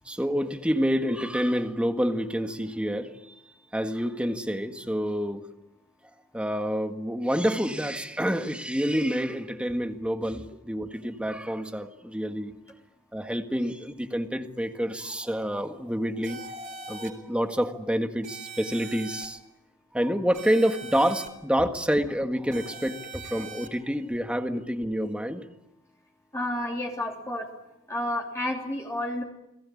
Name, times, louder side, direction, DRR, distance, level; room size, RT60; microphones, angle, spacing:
voice 1, 0.0-3.4 3.7-5.5 6.3-12.6 13.1-19.4 19.9-25.5, equal, 5° right, 1.7 m, -28 dB
sound 1, 16.2-17.1 18.2-19.3 20.3-21.3 22.5-23.7, right 4 dB, 40° right, 4.5 m, -41 dB
voice 2, 26.3-27.5 27.9-29.2, left 1 dB, 15° left, 3.3 m, -30 dB
30.0 x 21.5 x 8.6 m
head